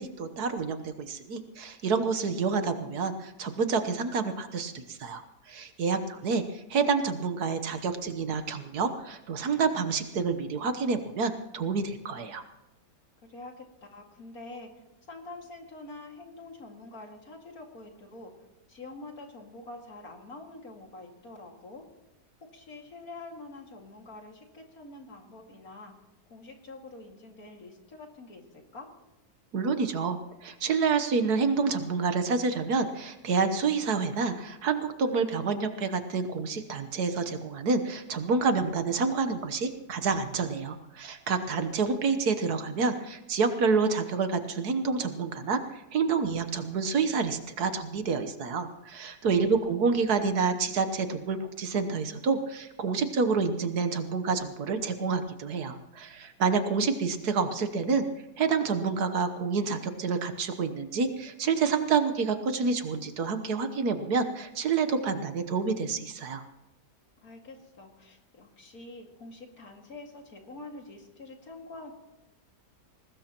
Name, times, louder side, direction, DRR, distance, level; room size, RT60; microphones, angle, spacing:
voice 1, 0.0-5.2 5.5-12.4 29.5-58.0 58.4-66.4, right 5 dB, 65° right, 9 dB, 1.6 m, -28 dB
voice 2, 5.9-6.4 13.2-14.8 15.1-18.3 18.7-21.9 22.4-25.9 26.3-28.9 49.3-49.8 67.2-71.9, left 2 dB, 55° left, 2 dB, 2.7 m, -46 dB
21.0 x 19.5 x 3.0 m, 0.93 s
omnidirectional pair, 1.8 m